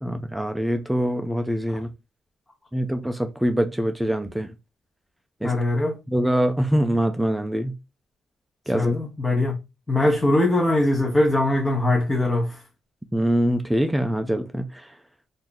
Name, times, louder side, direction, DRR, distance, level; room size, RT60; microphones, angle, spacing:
voice 1, 0.0-1.9 2.7-4.5 5.4-5.5 6.1-7.7 8.7-8.9 13.1-14.9, equal, 5° right, 0.4 m, -24 dB
voice 2, 5.4-6.0 8.7-9.5 9.9-12.6, left 1 dB, 15° left, 0.9 m, -21 dB
3.0 x 2.6 x 3.8 m
cardioid pair, 90°, 0 cm